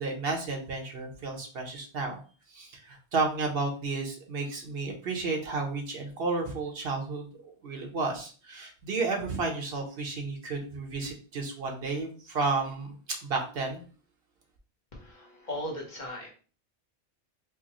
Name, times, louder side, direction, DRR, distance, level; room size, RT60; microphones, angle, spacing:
voice 1, 0.0-2.2 2.5-13.0 13.2-13.8, right 3 dB, 60° right, 2 dB, 1.0 m, -32 dB
voice 2, 14.9-16.3, left 1 dB, 45° left, -2 dB, 1.1 m, -38 dB
4.7 x 2.1 x 2.9 m, 0.38 s
omnidirectional pair, 1.1 m